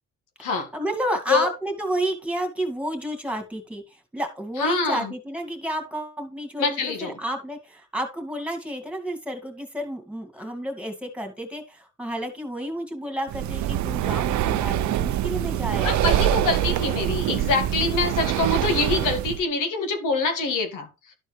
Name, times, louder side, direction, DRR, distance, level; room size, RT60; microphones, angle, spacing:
voice 1, 0.4-16.1 16.4-16.5, right 1 dB, 5° right, 2.2 m, -31 dB
voice 2, 4.6-5.1 6.6-7.2 15.8-21.1, left 3 dB, 90° left, 1.8 m, -25 dB
Breathing, 13.3-19.4, right 12 dB, 70° right, 0.5 m, -24 dB
12.0 x 4.5 x 3.2 m
cardioid pair, 90°, 30 cm